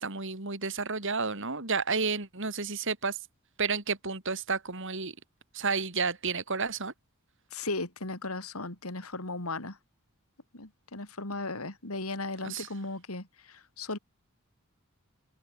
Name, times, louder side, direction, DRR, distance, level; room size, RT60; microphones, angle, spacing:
voice 1, 0.0-3.2 3.6-5.1 5.5-6.9 12.4-12.7, right 4 dB, 60° right, 3.9 m, -31 dB
voice 2, 7.5-9.8 10.5-14.0, left 2 dB, 90° left, 4.3 m, -36 dB
open air
head